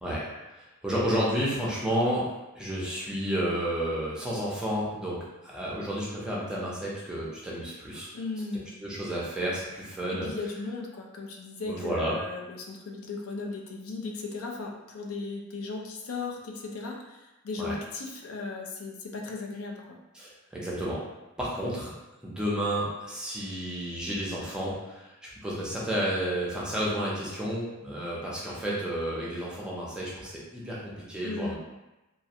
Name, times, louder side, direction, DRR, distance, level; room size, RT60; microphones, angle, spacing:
voice 1, 0.0-2.3 2.5-8.1 8.8-10.3 11.7-12.2 17.6-17.7 20.1-21.0 21.4-21.9 22.2-25.1 25.4-31.6, equal, 5° right, -6 dB, 0.5 m, -31 dB
voice 2, 8.1-8.7 10.1-20.0 31.2-31.6, left 3 dB, 85° left, 1 dB, 0.4 m, -36 dB
2.4 x 2.1 x 2.7 m, 1.0 s
head